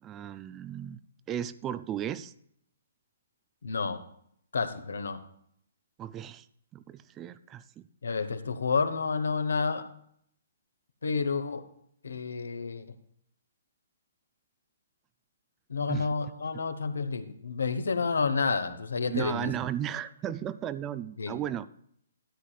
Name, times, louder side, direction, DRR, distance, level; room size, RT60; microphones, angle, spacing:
voice 1, 0.0-1.0 1.3-2.3 6.0-6.5 6.7-7.8 15.9-16.1 19.1-21.7, right 10 dB, 20° right, 14 dB, 0.3 m, -35 dB
voice 2, 3.6-4.0 4.5-5.2 8.0-9.8 11.0-11.6 12.0-12.8 15.7-19.5 21.2-21.4, left 4 dB, 70° left, 10 dB, 0.9 m, -30 dB
13.0 x 9.5 x 2.4 m, 0.69 s
figure-of-eight pair, 130°, 0 cm